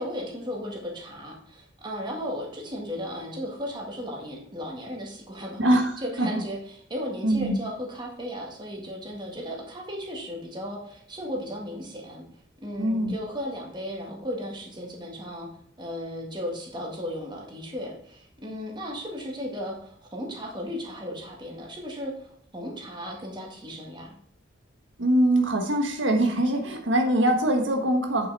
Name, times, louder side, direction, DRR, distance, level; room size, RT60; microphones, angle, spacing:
voice 1, 0.0-5.6 6.0-6.6 6.9-12.2 12.6-15.5 15.8-24.2, equal, 25° right, -1 dB, 2.0 m, -35 dB
voice 2, 5.6-5.9 6.2-6.4 7.2-7.6 12.8-13.1 25.0-28.3, right 1 dB, 80° right, 3 dB, 1.4 m, -23 dB
8.4 x 6.8 x 4.2 m, 0.64 s
head